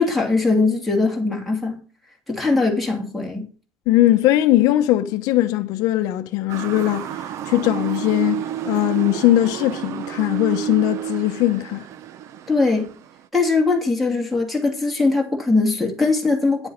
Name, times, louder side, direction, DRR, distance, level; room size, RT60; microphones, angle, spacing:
voice 1, 0.0-1.8 2.3-3.5 12.5-12.9 13.3-16.7, left 3 dB, ahead, 2.7 m, -20 dB
voice 2, 3.9-11.9, left 14 dB, 65° left, 0.8 m, -20 dB
Motor vehicle (road) / Siren, 6.5-13.3, right 10 dB, 45° right, 0.7 m, -30 dB
10.0 x 7.5 x 5.1 m
cardioid pair, 160°, 7 cm